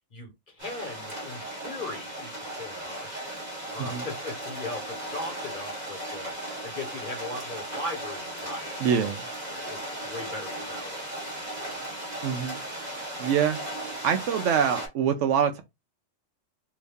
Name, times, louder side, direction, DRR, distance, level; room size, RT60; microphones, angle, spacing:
voice 1, 0.1-3.2 3.7-6.3 6.6-9.0 9.4-11.0 11.3-11.8, left 2 dB, 40° left, 1.4 m, -39 dB
sound 1, 0.6-14.9, right 1 dB, 35° right, 1.9 m, -36 dB
voice 2, 8.8-9.3 12.2-12.6 13.2-13.6 14.0-15.6, right 8 dB, 70° right, 0.9 m, -25 dB
3.1 x 2.6 x 3.4 m
omnidirectional pair, 1.3 m